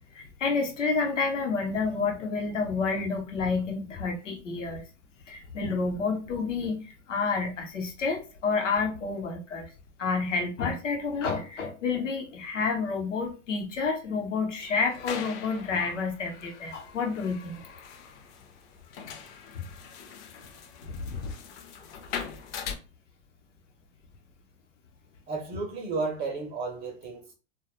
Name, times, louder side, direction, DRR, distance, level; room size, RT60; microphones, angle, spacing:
voice 1, 0.1-4.8 5.3-9.7 10.0-17.7 19.5-19.6 20.8-21.3, left 4 dB, 85° left, 0.8 m, -29 dB
sound 1, 14.6-22.7, left 7 dB, 45° left, 0.5 m, -42 dB
voice 2, 25.3-27.3, right 3 dB, 25° right, 0.4 m, -33 dB
2.2 x 2.0 x 2.9 m
hypercardioid pair, 110°, 36 cm